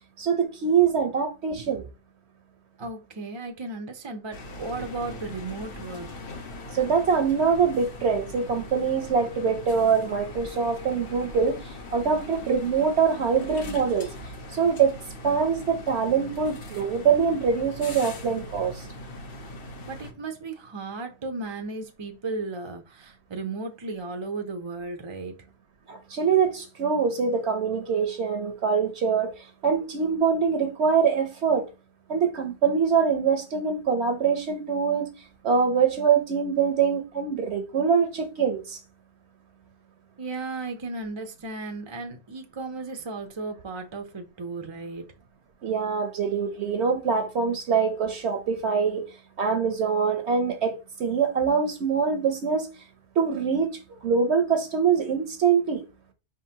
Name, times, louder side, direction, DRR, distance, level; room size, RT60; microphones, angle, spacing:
voice 1, 0.2-1.8 6.7-14.1 14.5-14.9 15.2-18.8 25.9-29.3 29.6-31.7 32.1-35.1 35.4-38.8 45.6-49.1 49.4-52.7 53.2-55.8, right 6 dB, 70° right, 0.9 m, -24 dB
voice 2, 2.8-6.1 19.9-25.4 40.2-45.1, right 3 dB, 35° right, 0.5 m, -35 dB
sound 1, 4.3-20.1, left 1 dB, 55° left, 1.0 m, -41 dB
4.9 x 3.7 x 2.8 m
omnidirectional pair, 1.2 m